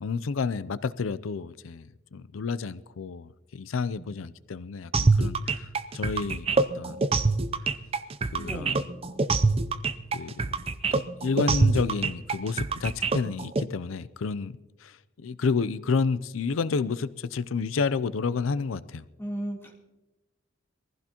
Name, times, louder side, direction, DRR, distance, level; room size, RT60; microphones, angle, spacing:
voice 1, 0.0-7.0 8.3-8.8 10.1-10.5 10.9-19.0, left 4 dB, 85° left, 0.5 m, -30 dB
sound 1, 4.9-13.6, right 3 dB, 30° right, 0.5 m, -25 dB
voice 2, 8.4-8.8 19.2-19.7, right 1 dB, 10° left, 3.2 m, -35 dB
23.0 x 15.5 x 2.9 m
head